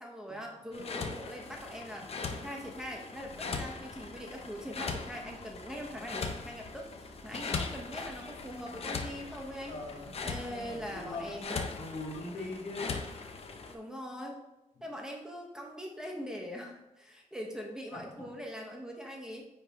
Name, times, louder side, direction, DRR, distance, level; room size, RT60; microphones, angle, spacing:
voice 1, 0.0-9.7 10.2-11.6 13.7-14.4 14.8-19.5, equal, 5° right, 0 dB, 0.9 m, -42 dB
sound 1, 0.7-13.8, left 4 dB, 50° left, 0.6 m, -40 dB
Car, 3.2-11.4, right 2 dB, 50° right, 1.3 m, -56 dB
voice 2, 9.7-10.1 10.5-13.0 14.8-14.9 17.9-18.3, left 2 dB, 90° left, -3 dB, 2.3 m, -41 dB
9.7 x 3.3 x 3.4 m, 0.92 s
wide cardioid pair, 180°, 14 cm